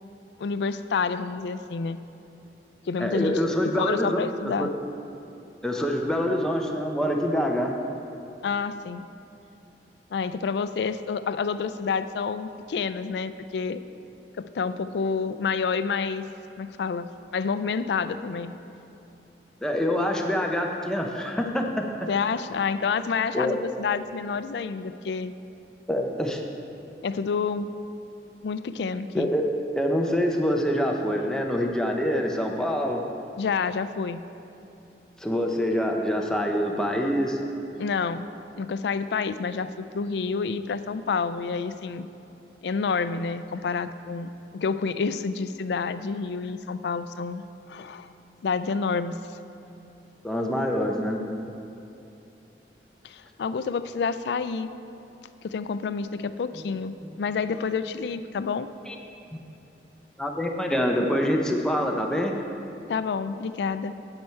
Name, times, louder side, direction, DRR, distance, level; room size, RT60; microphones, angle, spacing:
voice 1, 0.4-2.0 2.9-3.4 3.8-4.7 8.4-9.1 10.1-13.8 14.4-16.3 16.6-18.5 22.1-25.3 27.0-27.7 28.4-29.3 33.4-34.2 37.8-38.3 38.6-42.1 42.6-48.1 48.4-49.2 53.0-54.7 55.4-58.7 62.9-63.9, left 5 dB, 75° left, 13 dB, 0.4 m, -28 dB
voice 2, 3.0-4.2 4.6-4.7 5.6-7.8 19.6-21.9 23.3-23.5 25.9-26.4 29.1-29.4 29.8-33.0 35.2-37.4 50.2-51.2 57.0-57.1 58.9-59.0 60.2-62.4, equal, 5° left, 1 dB, 0.7 m, -25 dB
9.0 x 8.7 x 4.5 m, 2.8 s
head